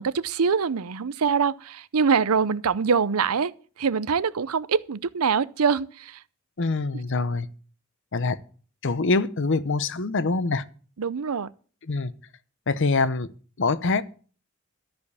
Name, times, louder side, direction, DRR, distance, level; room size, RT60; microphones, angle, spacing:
voice 1, 0.0-3.5 3.8-6.2 11.0-11.5, right 6 dB, 85° right, 0.6 m, -24 dB
voice 2, 6.6-7.5 8.1-8.4 8.8-10.6 11.9-12.1 12.7-13.3 13.6-14.0, left 3 dB, 60° left, 0.8 m, -24 dB
13.5 x 5.2 x 8.4 m
head